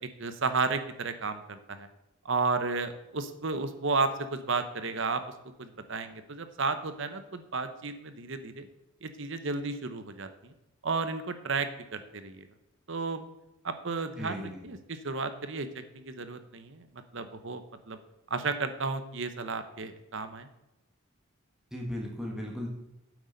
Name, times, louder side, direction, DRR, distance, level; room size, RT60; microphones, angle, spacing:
voice 1, 0.0-1.9 2.2-5.2 5.6-8.7 9.0-10.5 10.8-12.5 12.9-13.2 13.6-18.0 18.3-20.5, right 4 dB, 60° right, 10 dB, 0.9 m, -33 dB
voice 2, 14.2-14.6 21.7-22.7, left 1 dB, 5° right, -1 dB, 1.5 m, -36 dB
9.5 x 7.9 x 4.0 m, 0.94 s
head